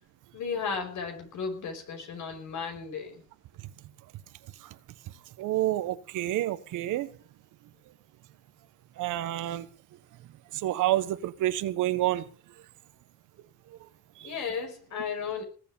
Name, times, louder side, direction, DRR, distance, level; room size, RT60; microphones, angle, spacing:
voice 1, 0.3-3.2 14.2-15.4, left 5 dB, 75° left, 5 dB, 5.5 m, -34 dB
voice 2, 5.4-7.1 9.0-9.7 10.5-12.3 13.8-13.9 14.2-14.3, right 14 dB, 90° right, 13 dB, 1.4 m, -29 dB
19.5 x 8.6 x 7.1 m, 0.41 s
cardioid pair, 90°, 30 cm